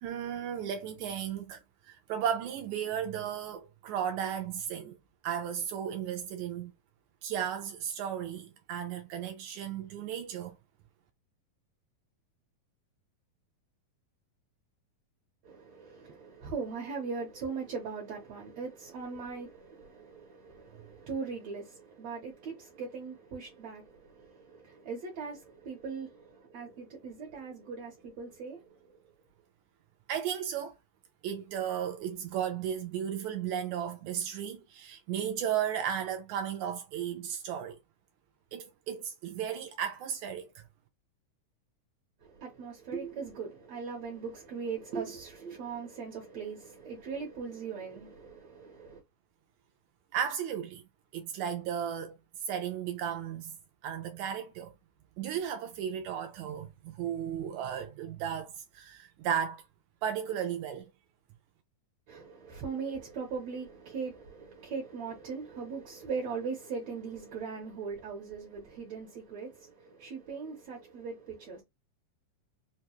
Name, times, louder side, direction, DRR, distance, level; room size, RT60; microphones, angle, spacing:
voice 1, 0.0-5.0 5.2-6.7 7.2-10.5 30.1-30.7 31.2-37.8 38.5-40.6 50.1-50.8 51.1-52.2 52.4-53.6 53.8-54.7 55.2-59.6 60.0-60.9, right 9 dB, 85° right, 1.7 m, -35 dB
voice 2, 15.4-29.0 42.2-49.0 62.1-71.6, right 5 dB, 70° right, 1.8 m, -40 dB
5.3 x 2.2 x 2.9 m
omnidirectional pair, 3.9 m